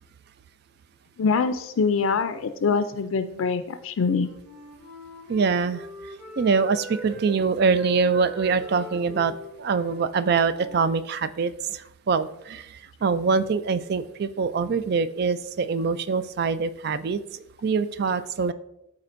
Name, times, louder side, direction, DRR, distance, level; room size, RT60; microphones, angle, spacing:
voice 1, 1.2-4.3, left 5 dB, 85° left, 9 dB, 0.4 m, -24 dB
Wind instrument woodwind instrument, 4.0-7.3 7.6-11.4, equal, 85° right, 2.4 m, -41 dB
voice 2, 5.3-5.9 6.4-18.5, right 5 dB, 50° right, 13 dB, 0.3 m, -24 dB
12.5 x 4.2 x 2.5 m, 0.86 s
head